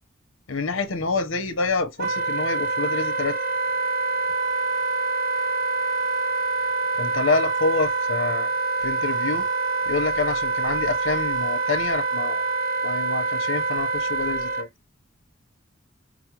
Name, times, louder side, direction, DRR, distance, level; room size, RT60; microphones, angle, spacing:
voice 1, 0.5-3.4 7.0-8.5 8.8-9.5 9.9-12.4 12.8-14.7, left 3 dB, 85° left, 0.9 m, -27 dB
Wind instrument woodwind instrument, 2.0-14.7, right 3 dB, 50° right, 0.7 m, -25 dB
5.0 x 2.1 x 2.9 m
head